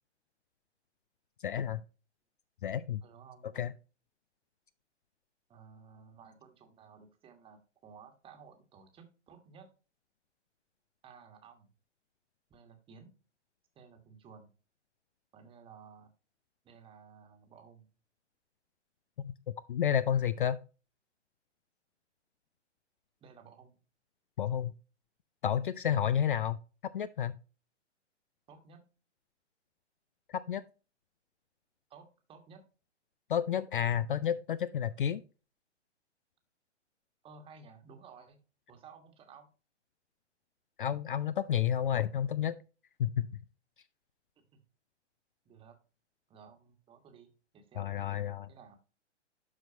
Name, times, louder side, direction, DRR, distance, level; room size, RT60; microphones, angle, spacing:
voice 1, 1.4-1.8 2.6-3.0 3.6-3.7 19.2-20.6 24.4-24.7 25.4-26.6 26.9-27.4 30.3-30.6 33.3-35.2 40.8-42.5 43.0-43.3 47.8-48.5, left 9 dB, 45° left, 16 dB, 0.4 m, -31 dB
voice 2, 3.0-3.8 5.5-9.7 11.0-11.7 12.5-13.2 13.7-14.5 15.3-16.1 16.6-17.9 23.2-23.8 28.5-28.9 31.9-32.7 37.2-38.4 38.7-39.5 44.4-44.6 45.4-45.8 46.3-48.8, right 6 dB, 15° right, 5 dB, 1.4 m, -55 dB
12.0 x 4.4 x 2.7 m, 0.33 s
figure-of-eight pair, 120°, 35 cm